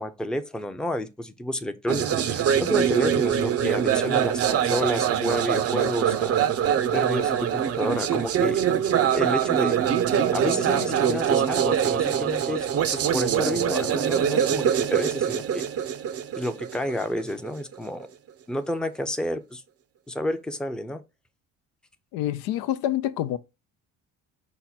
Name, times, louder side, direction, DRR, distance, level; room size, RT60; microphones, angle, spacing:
voice 1, 0.0-6.4 6.9-8.7 9.1-9.8 10.3-12.7 12.9-15.6 16.4-18.1 18.5-19.6 20.1-21.0, left 1 dB, ahead, 0.5 m, -30 dB
sound 1, 1.9-17.7, right 9 dB, 45° right, 0.6 m, -24 dB
voice 2, 22.1-23.4, left 12 dB, 85° left, 0.5 m, -27 dB
5.7 x 2.1 x 4.0 m
cardioid pair, 90°, 35 cm